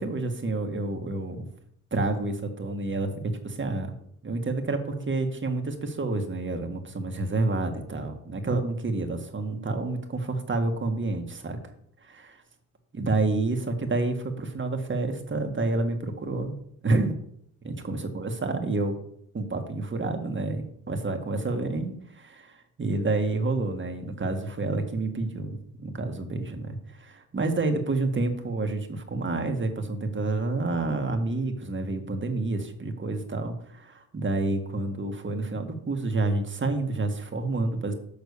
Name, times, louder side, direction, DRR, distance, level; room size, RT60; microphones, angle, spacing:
voice 1, 0.0-1.5 1.9-3.9 4.2-11.6 12.0-12.4 12.9-16.5 16.8-17.2 17.6-19.0 19.3-37.9, right 2 dB, 35° right, 5 dB, 1.8 m, -29 dB
6.9 x 5.8 x 6.9 m, 0.71 s
supercardioid pair, 60°, 33 cm